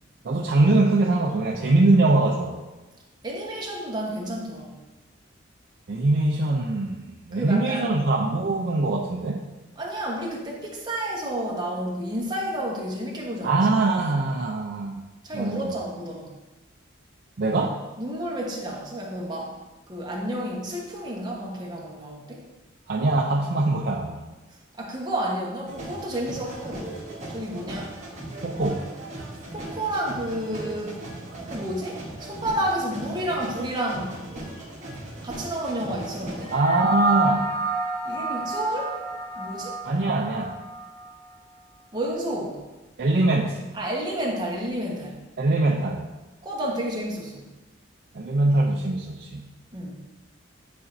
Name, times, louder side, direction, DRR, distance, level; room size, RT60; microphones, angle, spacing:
voice 1, 0.2-2.6 5.9-9.4 13.4-14.9 15.3-15.7 17.4-17.8 22.9-24.3 28.4-28.9 36.5-37.5 39.8-40.5 43.0-43.6 45.4-46.1 48.1-49.5, right 2 dB, 55° right, -1 dB, 0.5 m, -22 dB
voice 2, 3.2-4.7 7.3-7.9 9.8-13.7 15.2-16.3 18.0-19.5 19.9-22.4 24.8-26.9 27.3-27.9 29.5-31.1 31.5-34.2 35.2-36.5 38.0-39.0 39.4-39.8 41.9-42.6 43.7-45.2 46.4-47.4 49.7-49.9, right 1 dB, 20° right, -3 dB, 1.1 m, -30 dB
sound 1, 25.7-36.6, right 1 dB, 35° right, 1.4 m, -38 dB
sound 2, 36.4-41.1, right 2 dB, 10° left, 0.6 m, -29 dB
9.4 x 4.2 x 2.6 m, 1.1 s
head